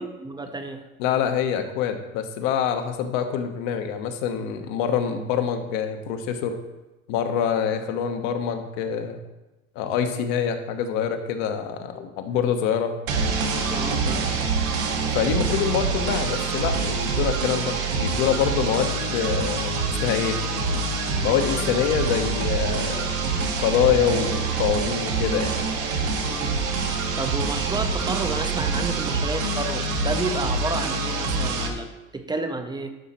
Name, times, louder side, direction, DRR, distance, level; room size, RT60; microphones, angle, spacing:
voice 1, 0.0-0.8 13.7-14.4 26.3-26.8 27.1-33.0, right 3 dB, 10° right, 7 dB, 0.7 m, -31 dB
voice 2, 1.0-6.6 7.1-9.2 9.7-13.0 15.1-20.4 21.2-23.1 23.6-25.6, left 8 dB, 60° left, 6 dB, 1.2 m, -25 dB
sound 1, 13.1-31.7, right 4 dB, 70° right, 1.6 m, -26 dB
11.5 x 5.0 x 4.3 m, 1.1 s
hypercardioid pair, 95°, 41 cm